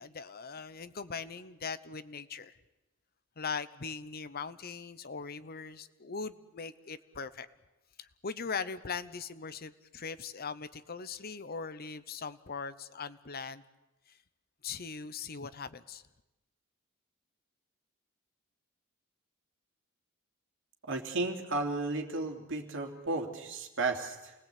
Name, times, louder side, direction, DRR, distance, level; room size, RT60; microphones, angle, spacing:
voice 1, 0.0-2.5 3.4-7.5 8.0-13.6 14.6-16.0, left 5 dB, 45° left, 14 dB, 0.9 m, -40 dB
voice 2, 20.9-24.3, right 3 dB, 65° right, 4 dB, 3.0 m, -34 dB
28.5 x 20.0 x 8.5 m, 0.99 s
head